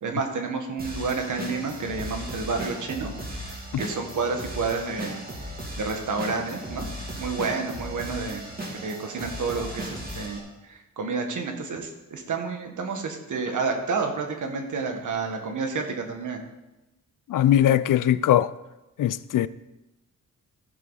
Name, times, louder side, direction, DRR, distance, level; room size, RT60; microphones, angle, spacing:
voice 1, 0.0-3.1 3.4-6.9 7.2-8.5 8.8-16.4, right 4 dB, 65° right, 1.7 m, -30 dB
sound 1, 0.8-10.4, right 1 dB, 30° right, 2.6 m, -36 dB
voice 2, 17.3-18.5 19.0-19.5, left 11 dB, 75° left, 0.5 m, -20 dB
15.0 x 7.2 x 4.1 m
wide cardioid pair, 130°, 32 cm